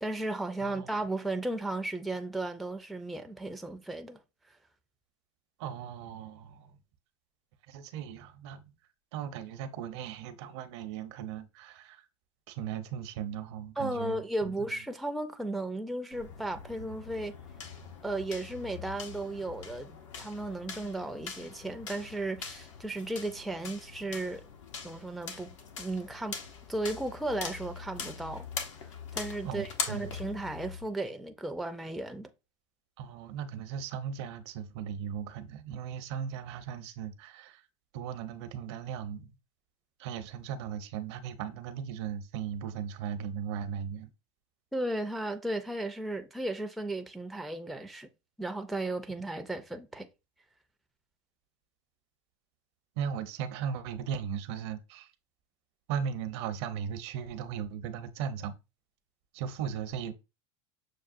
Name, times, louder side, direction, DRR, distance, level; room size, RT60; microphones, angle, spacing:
voice 1, 0.0-4.2 13.8-17.3 18.0-24.4 24.8-26.4 26.7-28.4 29.1-32.3 44.7-48.1 48.4-50.1, right 2 dB, ahead, 0.4 m, -35 dB
voice 2, 0.6-0.9 5.6-6.8 7.7-8.6 9.1-12.0 12.5-14.7 29.4-30.2 33.0-37.6 37.9-39.4 40.0-44.1 53.0-55.1 55.9-58.6 59.3-60.1, right 8 dB, 65° right, 0.7 m, -37 dB
sound 1, 16.1-30.9, left 6 dB, 85° left, 0.9 m, -42 dB
6.5 x 2.3 x 2.5 m
hypercardioid pair, 110°, 16 cm